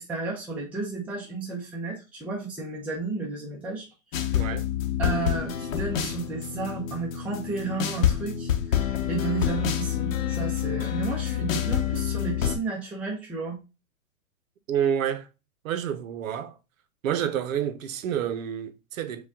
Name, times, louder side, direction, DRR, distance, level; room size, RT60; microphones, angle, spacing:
voice 1, 0.0-3.9 4.2-4.3 5.0-13.6, right 4 dB, 5° right, 0.5 m, -33 dB
sound 1, 4.1-12.6, left 10 dB, 65° left, 0.9 m, -27 dB
voice 2, 4.3-4.7 14.7-15.3 15.6-16.6 17.0-19.3, right 9 dB, 65° right, 0.7 m, -28 dB
4.9 x 2.3 x 3.5 m
hypercardioid pair, 135°, 43 cm